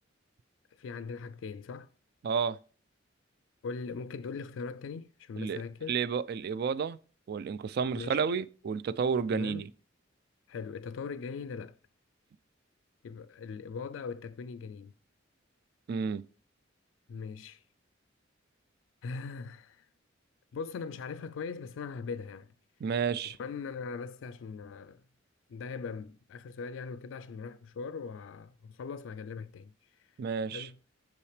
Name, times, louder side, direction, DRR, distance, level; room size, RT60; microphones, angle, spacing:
voice 1, 0.7-1.9 3.6-6.0 7.9-8.4 9.3-9.7 10.5-11.8 13.0-14.9 17.1-17.6 19.0-19.9 20.5-22.5 23.2-25.0 25.5-30.1 30.5-30.8, left 5 dB, 75° left, 0.3 m, -40 dB
voice 2, 2.2-2.6 5.4-5.6 5.9-7.0 7.3-9.7 15.9-16.2 22.8-23.4 30.2-30.7, right 6 dB, 55° right, 0.3 m, -31 dB
6.4 x 5.6 x 3.3 m
head